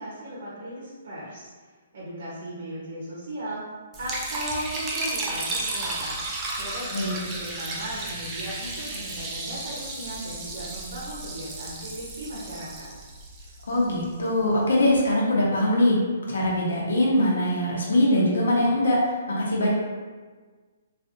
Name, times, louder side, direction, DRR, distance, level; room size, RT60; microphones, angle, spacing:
voice 1, 0.0-1.5 1.9-3.6 4.0-6.2 6.6-12.9, right 1 dB, 65° right, -8 dB, 1.0 m, -37 dB
Liquid, 3.9-14.1, right 2 dB, 20° right, 0.4 m, -33 dB
voice 2, 13.7-16.0 16.3-19.7, left 1 dB, 90° left, -3 dB, 0.9 m, -22 dB
3.3 x 2.5 x 2.6 m, 1.4 s
hypercardioid pair, 160°, 0 cm